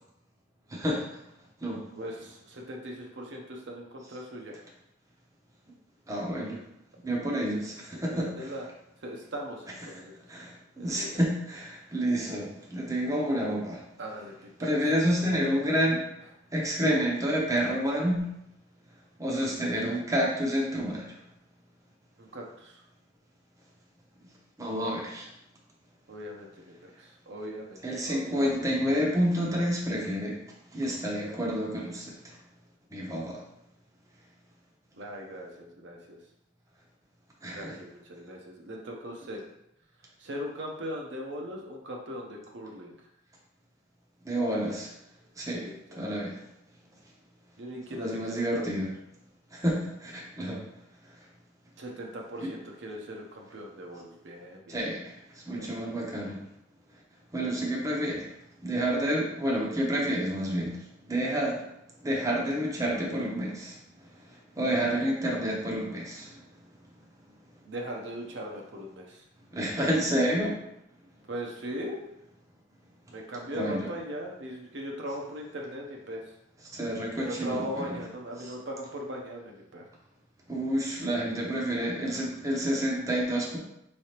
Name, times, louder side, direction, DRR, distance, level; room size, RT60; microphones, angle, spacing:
voice 1, 0.7-1.2 1.6-1.8 6.1-6.6 7.0-8.5 9.9-10.0 10.3-13.8 14.6-16.1 16.5-18.3 19.2-21.1 24.6-25.3 27.8-30.4 30.7-32.4 32.9-33.4 37.4-37.8 44.2-44.9 45.4-45.7 46.0-46.4 47.9-48.9 49.5-50.6 52.4-52.5 54.7-56.4 57.3-58.3 58.6-61.6 62.0-63.8 64.5-66.4 69.5-70.6 73.5-73.9 76.7-77.9 80.5-83.6, equal, 15° right, -3 dB, 0.7 m, -29 dB
voice 2, 1.9-4.6 7.0-7.2 7.9-8.7 9.0-10.4 10.8-11.2 14.0-14.7 22.2-22.8 26.1-28.6 34.9-36.2 37.5-39.4 40.2-42.9 45.5-46.2 47.6-48.8 51.8-54.9 55.5-55.7 67.6-69.2 71.3-72.0 73.1-76.3 77.2-79.9 82.1-82.3, equal, 60° right, 0 dB, 0.7 m, -39 dB
4.7 x 3.2 x 2.8 m, 0.80 s
head